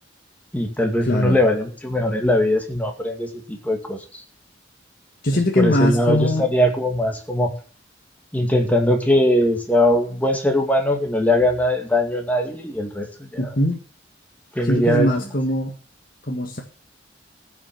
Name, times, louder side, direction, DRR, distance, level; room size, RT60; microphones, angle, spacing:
voice 1, 0.5-4.2 5.3-7.5 8.3-13.6 14.6-15.3, left 1 dB, 10° left, 3 dB, 2.1 m, -21 dB
voice 2, 1.1-1.4 5.2-6.5 13.4-13.8 14.6-15.7 16.2-16.6, left 1 dB, 50° left, 1 dB, 1.6 m, -21 dB
15.0 x 6.1 x 7.7 m, 0.40 s
head